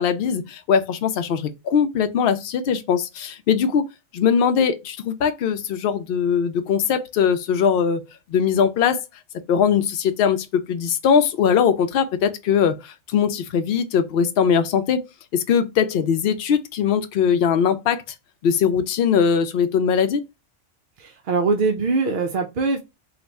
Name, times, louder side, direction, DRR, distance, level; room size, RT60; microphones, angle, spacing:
voice 1, 0.0-3.9 4.1-8.0 8.3-9.0 9.5-15.0 15.3-18.0 18.4-20.2, left 7 dB, 60° left, 0.7 m, -20 dB
voice 2, 21.0-22.8, right 4 dB, 60° right, 0.6 m, -22 dB
3.4 x 2.4 x 3.9 m
omnidirectional pair, 1.3 m